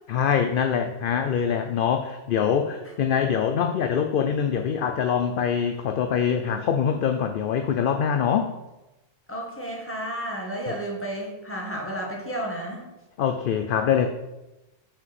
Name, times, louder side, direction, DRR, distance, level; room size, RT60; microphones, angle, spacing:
voice 1, 0.1-8.5 10.7-10.8 13.2-14.1, left 7 dB, 60° left, 7 dB, 0.6 m, -24 dB
voice 2, 9.3-12.8, right 1 dB, 10° left, -2 dB, 1.6 m, -32 dB
6.1 x 5.1 x 5.8 m, 0.99 s
omnidirectional pair, 1.2 m